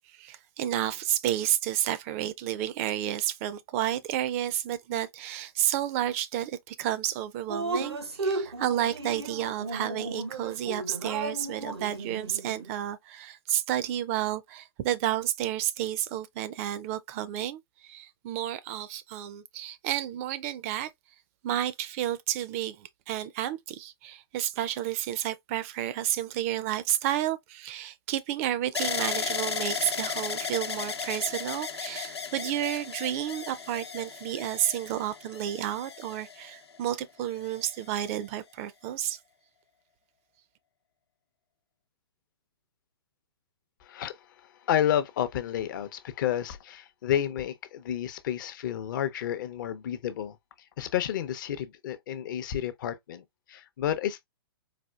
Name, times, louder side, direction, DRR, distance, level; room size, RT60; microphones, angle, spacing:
voice 1, 0.1-20.9 21.4-39.2, right 12 dB, 35° right, 0.4 m, -31 dB
Drip, 7.5-12.7, right 3 dB, 90° right, 0.8 m, -34 dB
sound 1, 28.7-36.8 37.5-38.1, left 6 dB, 85° left, 0.8 m, -35 dB
voice 2, 43.8-44.2 44.7-50.4 50.8-53.2 53.5-54.3, left 10 dB, 50° left, 0.6 m, -30 dB
4.2 x 2.4 x 2.2 m
hypercardioid pair, 125°, 13 cm